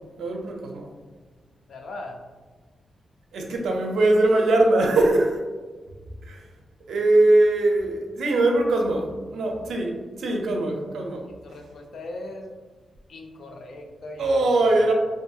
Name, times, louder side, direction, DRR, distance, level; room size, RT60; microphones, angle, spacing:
voice 1, 0.2-0.9 3.3-5.4 6.2-6.5 6.9-11.3 14.2-14.9, right 2 dB, 85° right, 1 dB, 0.4 m, -21 dB
voice 2, 1.7-2.2 11.2-12.5 13.1-14.8, left 2 dB, 60° left, 3 dB, 0.4 m, -39 dB
2.6 x 2.6 x 2.3 m, 1.4 s
wide cardioid pair, 160°, 0 cm